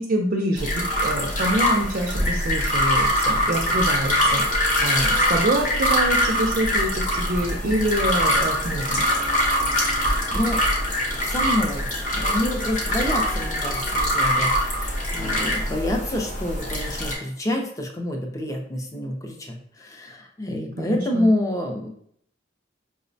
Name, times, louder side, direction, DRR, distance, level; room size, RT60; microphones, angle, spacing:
voice 1, 0.0-9.1 20.8-21.3, right 1 dB, 50° right, 0 dB, 0.4 m, -26 dB
sound 1, 0.6-2.5 3.4-7.1 7.3-11.0 11.4-14.8, left 1 dB, 80° left, 0.8 m, -41 dB
sound 2, 0.6-17.1, equal, 45° left, 0.8 m, -23 dB
voice 2, 9.9-10.6 11.1-11.9 12.1-21.9, left 1 dB, 20° left, 2 dB, 0.4 m, -28 dB
4.9 x 2.0 x 2.6 m, 0.67 s
head